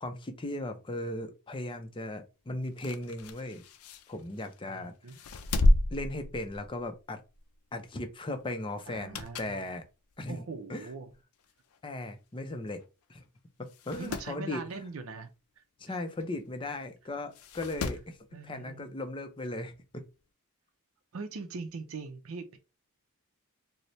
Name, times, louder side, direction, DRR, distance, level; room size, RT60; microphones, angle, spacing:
voice 1, 0.0-3.6 4.1-4.9 5.9-7.2 7.7-9.8 10.2-10.4 10.7-10.9 11.8-12.8 13.1-13.2 13.6-14.6 15.8-18.2 18.4-20.1, left 2 dB, 20° left, 0.5 m, -37 dB
sound 1, 2.6-4.6 5.1-7.0 7.3-7.5 8.8-9.6 10.1-10.2 11.1-11.2 11.4-11.5 11.7-11.8 12.7-12.9 13.2-13.3 13.7-14.3 16.2-16.3 17.3-18.1 19.4-19.5, left 1 dB, 80° left, 0.5 m, -31 dB
voice 2, 4.7-5.2 8.9-9.7 10.3-11.1 14.0-15.3 15.6-16.0 18.3-19.0 21.1-22.6, right 4 dB, 65° right, 0.5 m, -41 dB
4.1 x 2.1 x 3.0 m
head